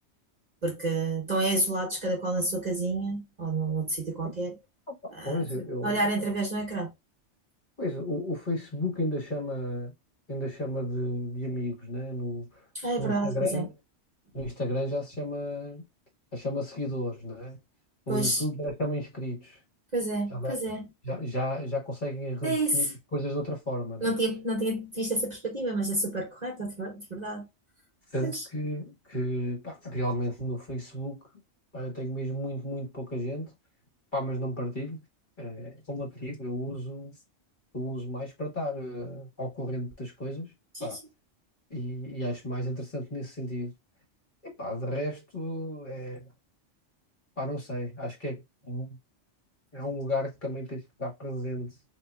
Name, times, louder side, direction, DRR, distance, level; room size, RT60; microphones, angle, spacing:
voice 1, 0.6-4.6 5.1-5.4 5.8-6.9 12.7-13.7 18.1-18.4 19.9-20.8 22.4-22.9 24.0-27.5 28.2-28.4 40.7-41.0, right 2 dB, 40° right, 1.1 m, -29 dB
voice 2, 5.2-6.3 7.8-9.9 10.3-12.6 13.0-13.7 14.3-15.8 16.3-17.6 18.1-19.6 20.3-20.6 21.0-24.1 28.1-31.2 31.7-33.5 34.1-35.0 35.4-37.1 37.7-40.5 40.8-41.0 41.7-43.7 44.4-46.3 47.4-49.0 49.7-51.8, equal, 40° left, 1.6 m, -33 dB
3.9 x 2.9 x 2.3 m
omnidirectional pair, 1.3 m